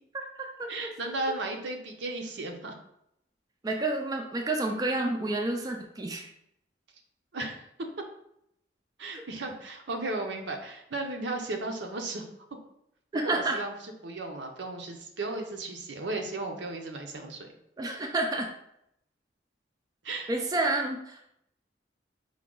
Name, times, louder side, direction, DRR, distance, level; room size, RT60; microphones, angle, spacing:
voice 1, 0.1-0.7 3.6-6.3 9.1-9.2 13.1-13.6 17.8-18.5 20.3-21.2, right 2 dB, 20° right, 2 dB, 0.3 m, -29 dB
voice 2, 0.7-2.8 7.3-7.6 9.0-12.3 13.2-17.5 20.0-20.3, right 2 dB, 80° right, 4 dB, 0.6 m, -35 dB
4.7 x 2.2 x 3.7 m, 0.76 s
head